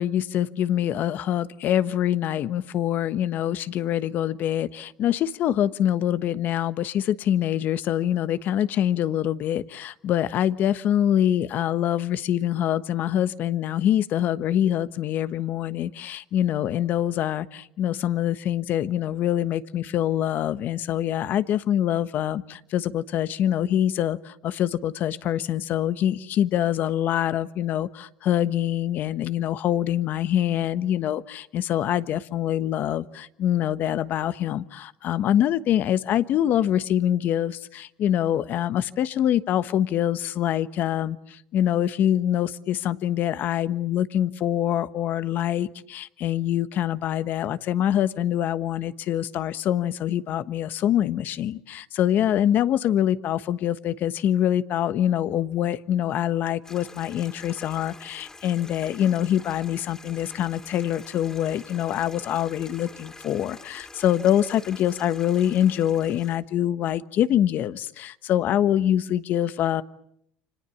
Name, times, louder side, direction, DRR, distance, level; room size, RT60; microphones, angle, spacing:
voice 1, 0.0-69.8, left 11 dB, 55° left, 13 dB, 1.3 m, -25 dB
Stream, 56.6-66.4, left 3 dB, 15° left, 3.2 m, -46 dB
30.0 x 26.0 x 7.2 m, 0.74 s
supercardioid pair, 100°, 4 cm